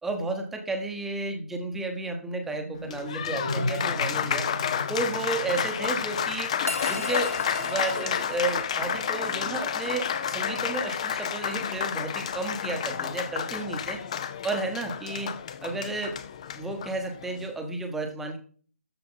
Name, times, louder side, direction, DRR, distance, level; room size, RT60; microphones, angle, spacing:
voice 1, 0.0-4.5 4.9-6.5 6.9-14.0 14.4-15.3 15.6-16.2 16.6-18.4, right 2 dB, 5° right, 4 dB, 1.0 m, -32 dB
sound 1, 2.3-7.7, left 1 dB, 90° right, 2.2 m, -36 dB
Applause, 2.7-17.5, left 8 dB, 30° left, 0.6 m, -31 dB
sound 2, 6.7-17.0, left 1 dB, 90° left, 1.0 m, -40 dB
13.0 x 4.8 x 3.9 m, 0.41 s
figure-of-eight pair, 150°, 7 cm